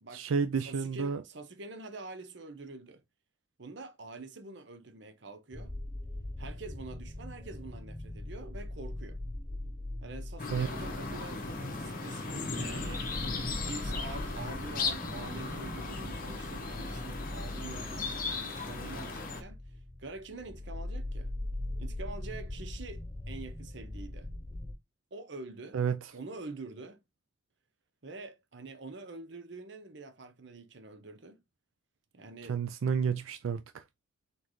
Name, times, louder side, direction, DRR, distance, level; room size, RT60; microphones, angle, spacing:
voice 1, 0.1-1.2 10.5-10.7 25.7-26.0 32.5-33.8, right 6 dB, 85° right, 0.4 m, -30 dB
voice 2, 0.6-3.0 3.6-5.7 6.4-9.2 10.0-13.2 13.7-19.6 20.0-21.3 21.8-24.3 25.1-25.8 26.1-27.0 28.0-31.4 32.1-32.6, right 3 dB, 60° right, 0.8 m, -46 dB
sound 1, 5.5-24.7, left 1 dB, 15° left, 0.5 m, -41 dB
sound 2, 10.4-19.4, left 3 dB, 45° left, 0.9 m, -37 dB
4.0 x 3.9 x 3.1 m
head